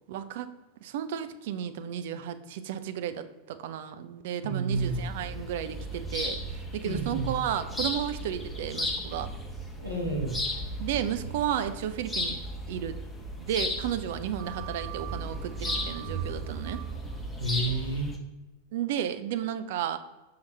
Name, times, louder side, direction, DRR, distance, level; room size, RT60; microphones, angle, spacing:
voice 1, 0.1-0.5 0.8-9.3 10.8-12.4 12.7-13.0 13.4-16.8 18.7-20.0, right 10 dB, 50° right, 10 dB, 0.5 m, -33 dB
voice 2, 4.4-5.1 6.8-7.3 9.8-10.3 17.4-18.1, right 2 dB, 85° right, -2 dB, 1.5 m, -30 dB
sound 1, 4.7-18.2, equal, 10° left, 0.9 m, -35 dB
5.8 x 5.5 x 3.2 m, 1.1 s
figure-of-eight pair, 90°, 0 cm